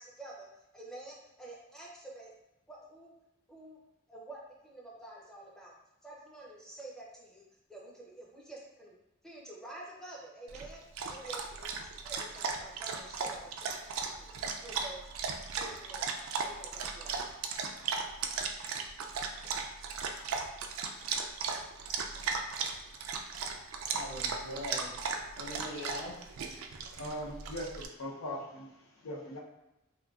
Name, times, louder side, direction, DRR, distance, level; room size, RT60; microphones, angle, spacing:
voice 1, 0.0-2.3 2.7-3.1 3.5-3.8 4.1-5.7 6.0-9.0 9.2-10.8 11.1-15.1 15.5-16.1 16.4-17.3 19.4-19.5, right 2 dB, 5° left, -4 dB, 0.6 m, -49 dB
Dog, 10.5-27.9, right 5 dB, 75° right, 0.3 m, -37 dB
voice 2, 23.9-25.0 25.4-26.3, left 1 dB, 50° left, -5 dB, 0.9 m, -41 dB
voice 3, 26.6-29.4, equal, 90° left, -1 dB, 0.6 m, -41 dB
3.6 x 2.2 x 2.3 m, 0.92 s
head